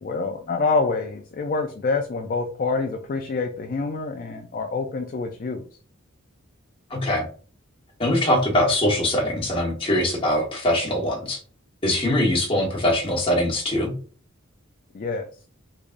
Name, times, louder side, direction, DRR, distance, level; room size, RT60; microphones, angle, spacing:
voice 1, 0.0-5.6 14.9-15.3, left 4 dB, 40° left, 4 dB, 0.3 m, -26 dB
voice 2, 6.9-7.3 8.0-11.4 11.8-13.9, left 1 dB, 25° left, -1 dB, 1.1 m, -22 dB
3.6 x 3.3 x 2.5 m, 0.40 s
head